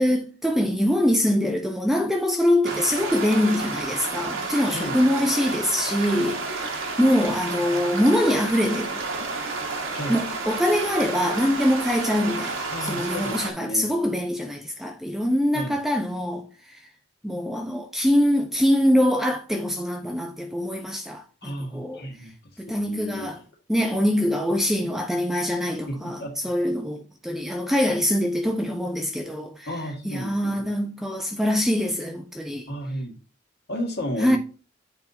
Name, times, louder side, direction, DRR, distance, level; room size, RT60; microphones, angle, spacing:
voice 1, 0.0-9.0 10.1-16.8 17.2-22.1 22.6-23.4 23.7-29.7 30.0-32.7 34.2-34.4, equal, ahead, 0.4 m, -24 dB
sound 1, 2.6-13.5, right 3 dB, 65° right, 1.2 m, -31 dB
voice 2, 4.7-5.1 9.9-10.2 12.7-13.9 15.5-15.8 21.4-22.3 22.7-23.3 25.9-26.4 29.7-30.7 32.7-33.1 33.7-34.4, equal, 55° left, 1.7 m, -33 dB
9.1 x 4.0 x 2.8 m
head